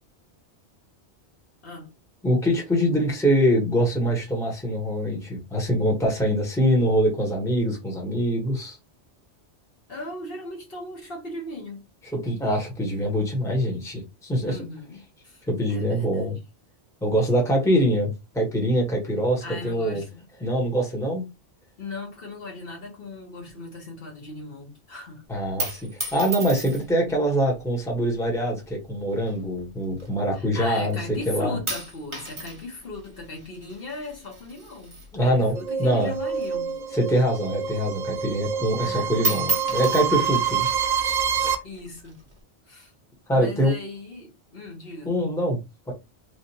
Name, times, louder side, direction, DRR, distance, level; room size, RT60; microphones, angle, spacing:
voice 1, 1.6-1.9 9.9-11.8 14.4-16.4 19.4-20.3 21.8-25.2 30.3-36.8 38.8-39.3 41.6-42.2 42.7-42.9 43.3-45.2, left 2 dB, 60° left, 1.3 m, -38 dB
voice 2, 2.2-8.8 12.2-14.6 15.5-16.4 17.0-20.0 20.4-21.2 25.3-25.8 26.1-31.0 31.3-31.6 35.1-35.5 35.8-36.1 36.9-40.7 41.0-41.6 43.3-43.7 45.0-45.6 45.9-46.0, equal, 5° left, 1.0 m, -24 dB
sound 1, 25.6-27.1 27.9-28.3 29.2-30.5 30.9-31.3 31.7-35.7 36.0-37.7 38.1-38.2 38.5-38.9 39.1-41.0 41.7-42.4, right 4 dB, 25° right, 1.1 m, -34 dB
sound 2, 35.5-41.5, right 7 dB, 55° right, 0.5 m, -27 dB
3.3 x 2.5 x 2.8 m
omnidirectional pair, 1.1 m